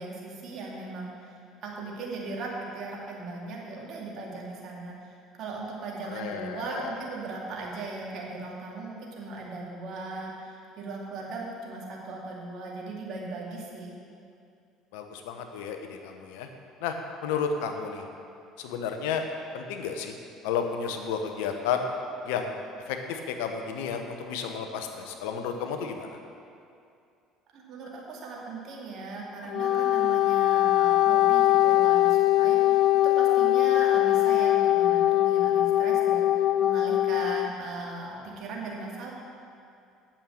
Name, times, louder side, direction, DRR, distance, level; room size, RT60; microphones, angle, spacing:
voice 1, 0.0-13.9 27.5-39.1, right 3 dB, 55° right, -2 dB, 2.3 m, -38 dB
voice 2, 6.1-6.9 14.9-16.5 16.8-16.9 17.2-18.0 18.6-19.2 19.5-20.1 20.4-21.9 22.2-26.2, left 6 dB, 75° left, 5 dB, 1.0 m, -32 dB
Wind instrument woodwind instrument, 29.4-37.5, left 14 dB, 60° left, 0.3 m, -22 dB
8.8 x 7.3 x 6.5 m, 2.5 s
hypercardioid pair, 65°, 0 cm